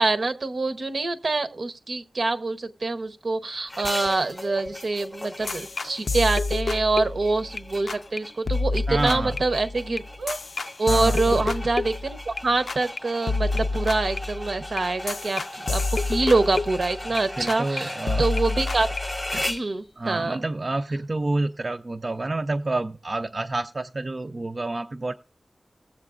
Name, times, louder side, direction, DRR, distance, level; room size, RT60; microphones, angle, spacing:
voice 1, 0.0-10.0 10.8-19.0 19.3-20.4, right 3 dB, 70° right, 10 dB, 0.7 m, -25 dB
sound 1, 3.7-19.7, left 1 dB, 20° left, 0.6 m, -37 dB
sound 2, 4.0-4.1 4.6-4.7 5.7-5.8 6.1-6.2 6.6-6.7 8.4-9.1 9.6-9.7 10.2-10.4 11.3-11.4 11.6-11.7, right 2 dB, 85° right, 1.1 m, -36 dB
sound 3, 5.5-7.6 7.9-8.2 8.5-12.4 12.7-13.0 13.3-17.2 17.5-17.8 18.1-19.6, left 3 dB, 75° left, 0.4 m, -28 dB
voice 2, 8.9-9.4 10.9-11.5 17.3-18.3 20.0-25.1, right 2 dB, 45° right, 5 dB, 0.4 m, -28 dB
18.0 x 7.4 x 2.4 m, 0.34 s
wide cardioid pair, 90°, 0 cm